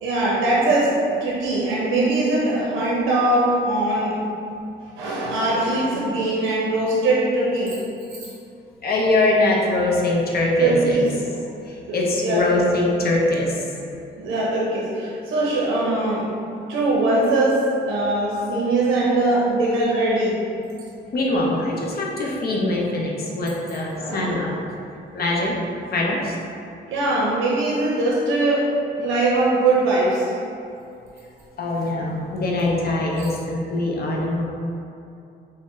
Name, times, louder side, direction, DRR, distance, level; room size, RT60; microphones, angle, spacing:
voice 1, 0.0-4.2 5.0-7.8 8.1-8.2 10.6-11.1 11.9-12.0 12.2-12.6 14.2-16.3 16.7-20.3 24.0-24.4 26.9-28.7 29.0-30.3 33.1-33.3, right 2 dB, 85° right, -5 dB, 0.6 m, -21 dB
voice 2, 8.8-11.0 11.7-13.6 21.1-24.6 25.1-25.5 25.9-26.3 31.6-34.4, left 2 dB, 50° left, -2 dB, 0.7 m, -22 dB
4.2 x 2.1 x 3.6 m, 2.6 s
cardioid pair, 90°, 20 cm